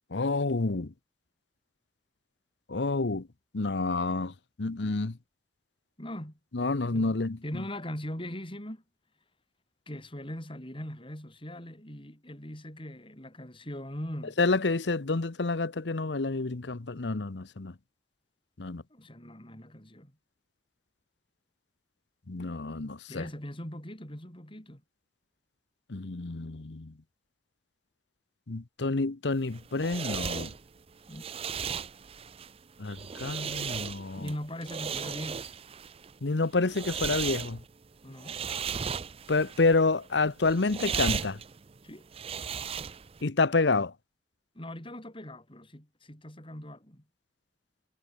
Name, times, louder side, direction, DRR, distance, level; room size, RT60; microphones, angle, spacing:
voice 1, 0.1-0.9 2.7-3.3 3.5-4.3 4.6-5.2 6.5-7.4 14.4-17.7 18.6-18.8 22.3-23.2 25.9-26.9 28.5-30.5 32.8-34.3 36.2-37.6 39.3-41.4 43.2-43.9, left 3 dB, 80° left, 1.0 m, -28 dB
voice 2, 6.0-6.4 6.9-8.8 9.9-14.4 18.9-20.1 23.1-24.8 31.1-31.2 34.2-35.5 38.0-38.4 41.8-42.1 44.6-47.0, left 1 dB, 30° left, 6.8 m, -40 dB
sound 1, 29.4-43.2, right 7 dB, 35° right, 0.5 m, -36 dB
head